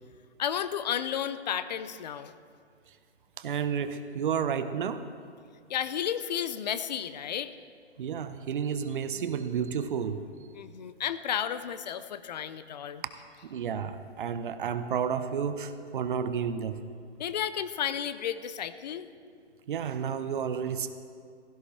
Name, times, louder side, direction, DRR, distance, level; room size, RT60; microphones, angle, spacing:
voice 1, 0.4-2.3 5.7-7.5 10.5-13.0 17.2-19.1, left 9 dB, 40° left, 13 dB, 0.6 m, -32 dB
voice 2, 3.4-5.1 8.0-10.2 13.4-16.8 19.7-20.9, right 7 dB, 50° right, 11 dB, 0.9 m, -31 dB
16.0 x 16.0 x 3.2 m, 2.2 s
figure-of-eight pair, 135°, 34 cm